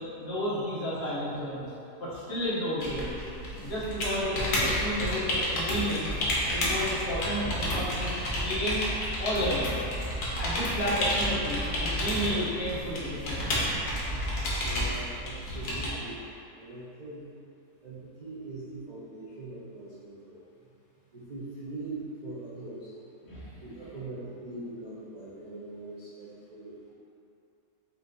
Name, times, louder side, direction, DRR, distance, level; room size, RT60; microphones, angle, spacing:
voice 1, 0.0-1.7 2.0-3.2 3.6-6.2 6.5-8.8 9.2-9.8 10.4-13.7 23.3-23.6, equal, 50° left, -8 dB, 1.0 m, -32 dB
sound 1, 2.8-15.9, equal, 80° left, 1.4 m, -30 dB
voice 2, 14.4-17.3 17.8-20.5 21.1-22.9 23.6-26.9, right 2 dB, 60° right, -9 dB, 0.4 m, -42 dB
4.3 x 2.6 x 3.7 m, 2.7 s
omnidirectional pair, 1.7 m